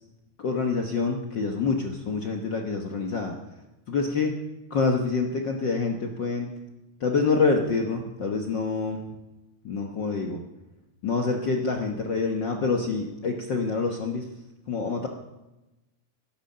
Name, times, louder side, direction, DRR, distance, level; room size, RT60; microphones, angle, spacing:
voice 1, 0.4-3.3 3.9-4.4 4.7-6.5 7.0-9.1 9.6-10.4 11.0-14.3 14.7-15.1, left 4 dB, 70° left, 2 dB, 1.0 m, -26 dB
14.0 x 11.5 x 6.6 m, 0.98 s
omnidirectional pair, 3.7 m